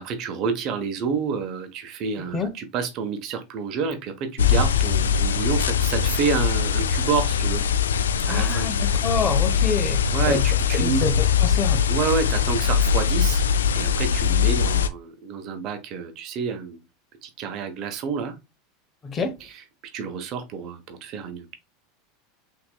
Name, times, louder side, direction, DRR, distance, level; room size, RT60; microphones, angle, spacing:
voice 1, 0.0-7.6 8.3-9.0 10.1-11.0 11.9-13.5 13.7-16.8 17.2-18.3 19.9-21.6, right 6 dB, 50° right, 1.0 m, -28 dB
sound 1, 4.4-14.9, left 7 dB, 90° left, 0.3 m, -22 dB
voice 2, 8.3-10.5 10.7-11.8 19.0-19.4, left 5 dB, 30° left, 0.9 m, -27 dB
5.9 x 2.9 x 2.2 m
hypercardioid pair, 95°, 0 cm